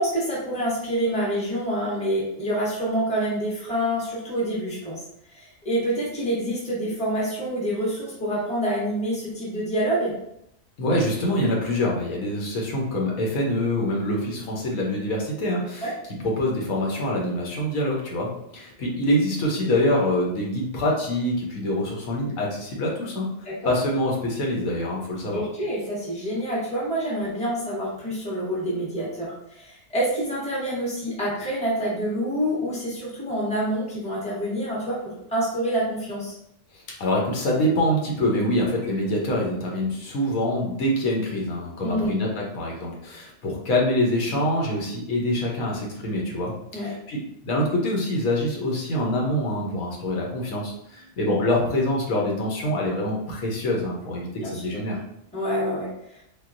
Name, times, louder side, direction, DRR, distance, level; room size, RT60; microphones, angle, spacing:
voice 1, 0.0-5.0 5.3-10.1 15.8-15.9 23.4-23.7 25.3-36.4 41.8-42.1 46.7-46.9 54.4-54.8 55.3-56.2, right 1 dB, 5° left, -6 dB, 0.8 m, -27 dB
voice 2, 10.8-15.9 16.2-23.3 23.6-25.5 37.0-55.0, left 1 dB, 85° left, -2 dB, 1.2 m, -25 dB
3.8 x 2.3 x 2.5 m, 0.76 s
omnidirectional pair, 1.4 m